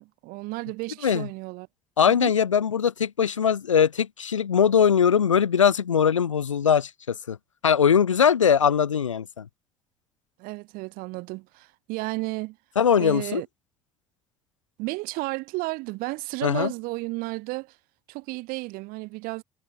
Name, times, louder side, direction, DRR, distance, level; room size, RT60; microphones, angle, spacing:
voice 1, 0.0-1.7 2.1-2.3 10.4-12.6 13.0-13.5 14.8-17.8 18.1-19.4, right 23 dB, 70° right, 4.9 m, -33 dB
voice 2, 2.0-7.4 7.6-9.5 12.8-13.4 16.4-16.7, left 7 dB, 90° left, 0.6 m, -21 dB
figure-of-eight pair, 50°, 16 cm